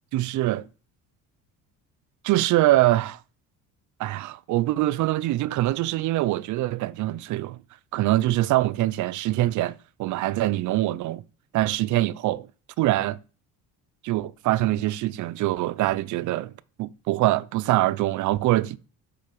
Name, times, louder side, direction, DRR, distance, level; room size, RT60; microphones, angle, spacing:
voice 1, 0.1-0.7 2.2-3.2 4.0-7.6 7.9-11.2 11.5-12.5 12.8-13.2 14.0-16.5 16.8-18.8, right 16 dB, 55° right, 0.5 m, -24 dB
6.7 x 5.6 x 6.7 m
cardioid pair, 155°, 37 cm